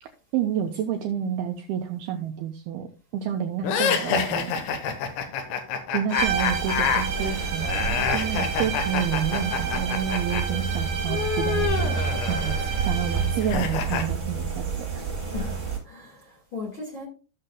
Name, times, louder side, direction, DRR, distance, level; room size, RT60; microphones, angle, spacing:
voice 1, 0.0-4.6 5.9-12.0 12.3-12.6 12.9-15.0, right 9 dB, 80° right, 4 dB, 2.2 m, -29 dB
sound 1, 3.6-10.4 10.7-14.0, left 7 dB, 85° left, 3.4 m, -28 dB
sound 2, 6.1-13.5, right 6 dB, 45° right, 3.9 m, -32 dB
sound 3, 6.2-15.8, right 5 dB, 15° right, 5.1 m, -29 dB
voice 2, 15.3-17.0, left 4 dB, 40° left, -2 dB, 1.8 m, -37 dB
15.0 x 6.6 x 2.3 m, 0.36 s
omnidirectional pair, 5.1 m